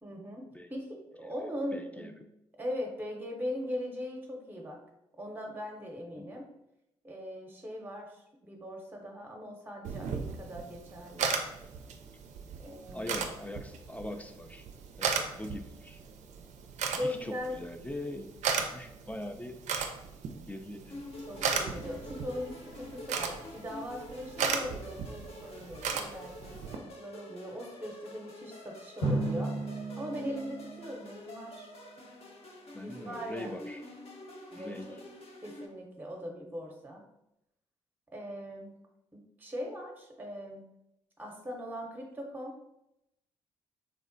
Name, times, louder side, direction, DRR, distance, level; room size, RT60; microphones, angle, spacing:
voice 1, 0.0-2.1 2.6-4.8 5.2-6.5 7.0-11.4 12.6-13.2 16.9-17.6 21.3-31.7 32.8-33.6 34.5-35.0 35.4-37.0 38.1-38.8 39.1-40.7 41.2-42.6, equal, 15° right, 1 dB, 0.7 m, -40 dB
voice 2, 1.7-2.1 6.2-6.3 12.9-14.6 15.0-16.0 17.0-18.3 18.7-19.6 20.5-20.9 32.7-33.8 34.6-34.9, left 1 dB, 10° left, 6 dB, 0.3 m, -41 dB
sound 1, 9.8-26.8, right 6 dB, 60° right, 0.4 m, -37 dB
sound 2, 20.9-35.7, left 1 dB, 45° left, 0.7 m, -48 dB
Drum, 29.0-31.7, right 2 dB, 70° left, 1.2 m, -34 dB
3.3 x 2.0 x 2.5 m, 0.86 s
hypercardioid pair, 45°, 14 cm